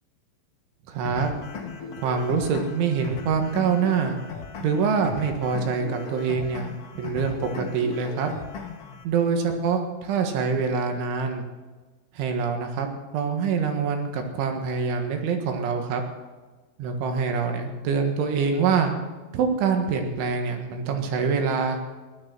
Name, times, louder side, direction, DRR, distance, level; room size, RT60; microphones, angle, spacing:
voice 1, 0.9-1.3 2.0-4.2 4.6-8.3 9.1-11.4 12.2-12.9 13.1-16.0 16.8-18.9 19.3-21.8, right 5 dB, 80° right, 4 dB, 4.0 m, -25 dB
sound 1, 1.0-9.0, left 6 dB, 75° left, 1.3 m, -37 dB
16.0 x 12.0 x 6.1 m, 1.3 s
omnidirectional pair, 5.4 m